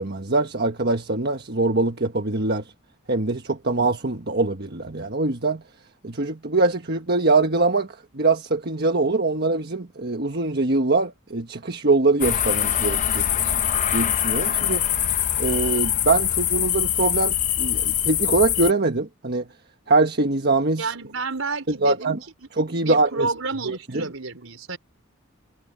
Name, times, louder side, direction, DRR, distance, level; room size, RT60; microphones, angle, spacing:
voice 1, 0.0-2.6 3.1-5.6 6.0-13.3 13.9-14.8 15.4-19.4 19.9-20.9 21.8-22.2 22.6-23.3 23.6-24.0, right 3 dB, 50° right, 1.4 m, -23 dB
sound 1, 12.2-18.7, left 10 dB, 35° left, 0.8 m, -23 dB
voice 2, 20.8-22.2 22.8-24.8, right 3 dB, 70° right, 4.7 m, -30 dB
head